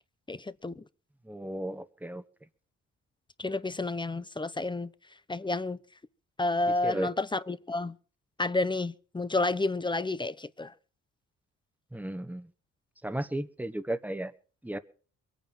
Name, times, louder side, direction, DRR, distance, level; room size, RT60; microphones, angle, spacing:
voice 1, 0.3-0.8 3.4-4.9 5.3-5.8 6.4-8.0 8.4-10.7, left 2 dB, 15° left, 0.8 m, -30 dB
voice 2, 1.2-2.2 6.8-7.1 11.9-12.5 13.0-14.3 14.6-14.8, right 1 dB, 5° right, 1.3 m, -34 dB
22.5 x 9.1 x 6.0 m
cardioid pair, 90°, 30 cm